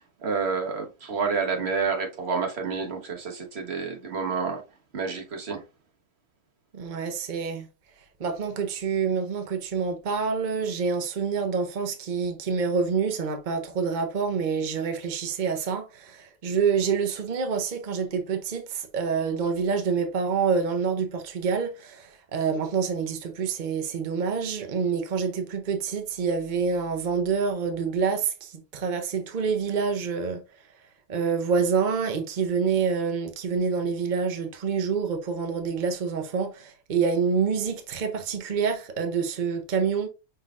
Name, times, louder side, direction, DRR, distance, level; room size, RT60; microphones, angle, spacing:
voice 1, 0.2-4.6 4.9-5.6, right 5 dB, 40° right, 1.2 m, -29 dB
voice 2, 6.7-7.7 8.2-30.4 31.1-40.1, right 5 dB, 65° right, 0.4 m, -27 dB
5.6 x 3.9 x 2.4 m
omnidirectional pair, 1.9 m